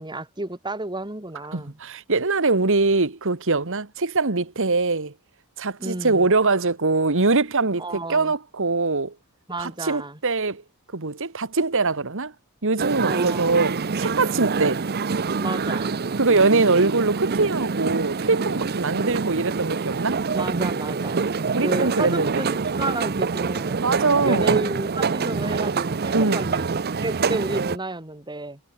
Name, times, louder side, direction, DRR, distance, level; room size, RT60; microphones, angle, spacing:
voice 1, 0.0-1.8 5.8-6.3 7.8-8.3 9.5-10.2 13.0-13.6 15.4-16.0 20.3-23.8 24.2-28.6, right 2 dB, 20° right, 3.2 m, -31 dB
voice 2, 1.5-5.1 5.6-9.1 9.6-10.6 10.9-12.3 12.6-14.8 16.2-20.2 21.5-22.4 23.8-24.6 26.1-26.5, right 3 dB, 60° right, 1.6 m, -22 dB
sound 1, 12.8-27.8, right 4 dB, 45° right, 0.7 m, -26 dB
head